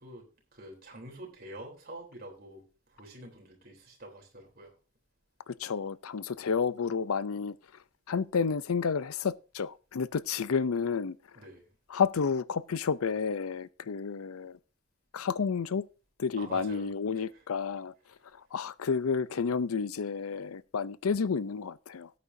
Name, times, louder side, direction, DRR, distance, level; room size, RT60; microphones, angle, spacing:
voice 1, 0.0-4.7 11.4-11.7 16.4-16.9 17.1-17.4, right 1 dB, 45° right, 3.6 m, -47 dB
voice 2, 5.5-7.6 8.1-11.2 11.9-14.6 15.1-15.9 16.2-17.9 18.3-22.1, left 5 dB, 85° left, 0.5 m, -31 dB
17.5 x 8.5 x 2.7 m
head